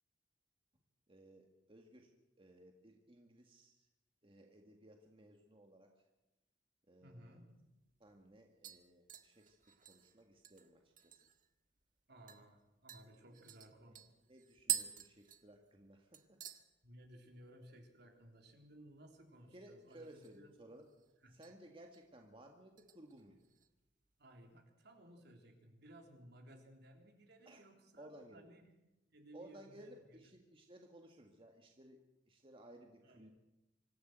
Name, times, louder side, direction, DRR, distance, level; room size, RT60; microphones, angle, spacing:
voice 1, 1.1-2.1 2.4-3.9 4.2-5.9 6.9-7.4 8.0-11.3 13.9-14.0 14.3-16.4 19.5-20.9 21.3-23.4 27.5-27.6 28.0-28.5 29.3-33.3, right 1 dB, 30° right, 2 dB, 1.9 m, -59 dB
voice 2, 7.0-7.5 12.1-14.1 16.8-20.6 21.2-21.4 24.2-28.6 29.1-30.4 33.0-33.3, right 1 dB, 60° right, 3 dB, 3.6 m, -59 dB
sound 1, 7.6-7.7 8.0-8.3 8.6-11.5 11.8-11.9 12.3-12.4 12.9-15.9 16.1-16.6 17.0-17.4 17.7-17.8 19.9-20.5 20.8-21.5 21.9-22.2 22.8-23.7 24.0-24.1, right 11 dB, 45° right, 1.7 m, -46 dB
25.5 x 14.5 x 8.1 m, 0.99 s
head